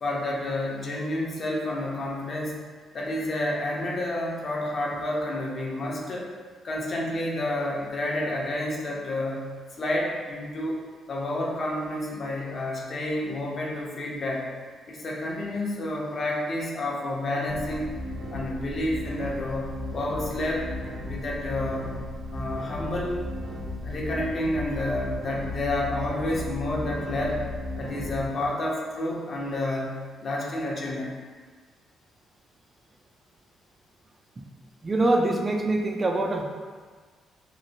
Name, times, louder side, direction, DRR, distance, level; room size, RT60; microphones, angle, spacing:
voice 1, 0.0-2.6 2.9-6.3 6.6-9.5 9.8-10.8 11.1-14.5 14.9-18.0 18.3-20.7 21.1-21.9 22.3-23.2 23.8-27.4 27.8-31.1, left 1 dB, 45° left, -2 dB, 0.6 m, -30 dB
sound 1, 17.5-28.3, left 1 dB, 85° right, 1.0 m, -35 dB
voice 2, 34.8-36.4, right 2 dB, 25° right, 2 dB, 0.3 m, -24 dB
2.9 x 2.6 x 2.7 m, 1.5 s
cardioid pair, 90°, 0 cm